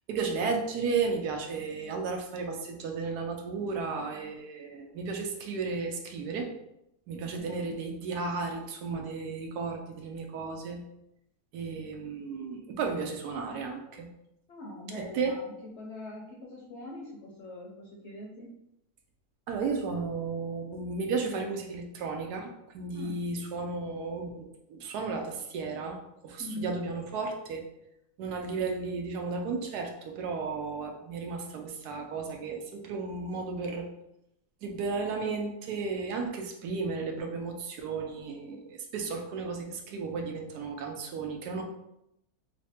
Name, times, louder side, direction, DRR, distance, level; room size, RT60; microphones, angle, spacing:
voice 1, 0.1-6.5 7.1-10.8 11.5-14.1 14.9-15.3 19.5-27.7 28.2-33.9 34.6-41.6, right 4 dB, 90° right, 3 dB, 1.2 m, -34 dB
voice 2, 7.1-7.8 14.5-18.5 22.9-23.1 26.4-26.7, left 1 dB, 60° left, -2 dB, 0.7 m, -43 dB
3.2 x 2.2 x 4.2 m, 0.82 s
omnidirectional pair, 1.6 m